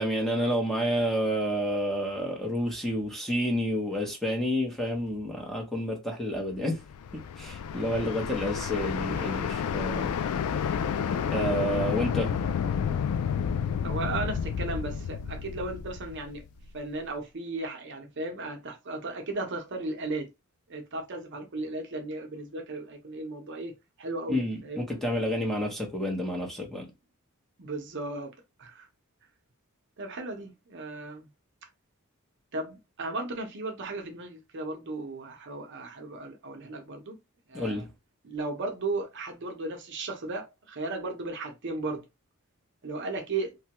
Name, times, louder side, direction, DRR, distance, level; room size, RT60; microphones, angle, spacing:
voice 1, 0.0-6.8 7.1-10.2 11.1-12.3 24.3-26.9 37.5-37.9, equal, ahead, 0.7 m, -29 dB
sound 1, 6.8-16.8, left 7 dB, 75° left, 0.3 m, -30 dB
voice 2, 9.0-9.5 13.8-16.4 16.7-20.3 20.7-24.9 27.6-28.3 28.6-28.9 30.0-31.3 31.6-31.7 32.5-37.2 37.5-37.8 38.2-42.1 42.8-43.6, right 2 dB, 55° right, 0.7 m, -35 dB
3.2 x 2.2 x 2.9 m
head